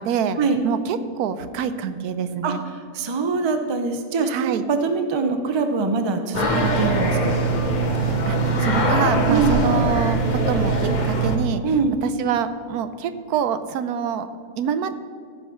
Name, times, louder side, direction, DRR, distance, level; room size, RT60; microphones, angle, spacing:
voice 1, 0.0-0.4 0.6-2.6 4.3-4.6 8.0-11.6 12.0-14.3 14.6-14.9, right 7 dB, 85° right, 11 dB, 1.1 m, -26 dB
voice 2, 2.9-7.4 9.2-9.6 11.6-11.9, right 4 dB, 35° right, 7 dB, 0.4 m, -23 dB
sound 1, 6.3-11.4, right 2 dB, 35° left, 1.0 m, -21 dB
14.5 x 5.5 x 5.6 m, 2.3 s
omnidirectional pair, 1.6 m